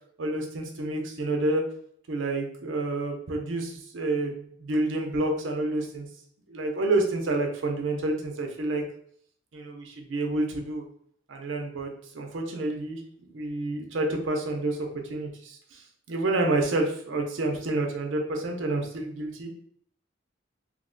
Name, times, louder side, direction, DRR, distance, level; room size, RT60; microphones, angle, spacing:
voice 1, 0.2-1.6 2.1-6.1 6.5-8.8 9.5-10.8 11.3-11.9 12.1-13.0 13.3-19.5, right 2 dB, 70° right, 2 dB, 0.6 m, -29 dB
2.9 x 2.1 x 3.7 m, 0.64 s
head